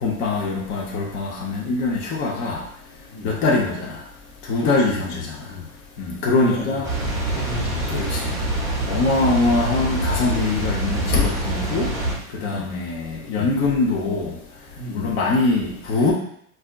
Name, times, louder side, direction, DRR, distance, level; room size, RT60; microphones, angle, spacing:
voice 1, 0.0-2.6 3.2-4.0 4.5-5.4 6.0-6.9 7.9-8.2 8.9-11.9 12.3-14.3 14.9-16.1, left 3 dB, 30° left, -3 dB, 0.6 m, -22 dB
voice 2, 4.6-5.7 6.4-6.8 7.3-8.2 8.8-9.0 12.4-12.7 13.3-13.5 14.8-15.2, left 2 dB, 65° left, 0 dB, 1.0 m, -33 dB
Water, 6.8-12.2, right 2 dB, 10° right, 0.7 m, -25 dB
4.1 x 2.5 x 2.2 m, 0.68 s
hypercardioid pair, 115°, 44 cm